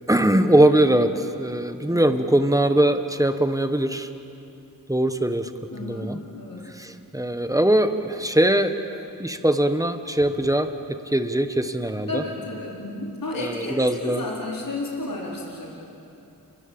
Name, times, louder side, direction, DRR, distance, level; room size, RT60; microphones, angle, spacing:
voice 1, 0.1-4.1 4.9-5.5 5.8-6.2 6.6-8.8 9.2-12.2 13.3-14.2, right 1 dB, 10° right, 8 dB, 1.5 m, -21 dB
voice 2, 5.7-6.7 12.1-15.7, left 2 dB, 70° left, -4 dB, 4.6 m, -32 dB
30.0 x 24.0 x 7.2 m, 2.8 s
wide cardioid pair, 65°, 36 cm